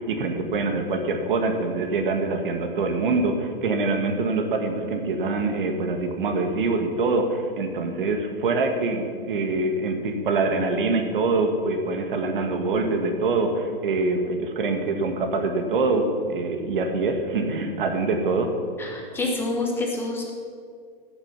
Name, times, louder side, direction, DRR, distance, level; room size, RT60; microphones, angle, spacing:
voice 1, 0.0-18.5, right 3 dB, 60° right, 4 dB, 1.7 m, -24 dB
voice 2, 18.8-20.3, left 2 dB, 5° left, -1 dB, 1.3 m, -27 dB
14.5 x 6.9 x 6.0 m, 2.1 s
hypercardioid pair, 155°, 29 cm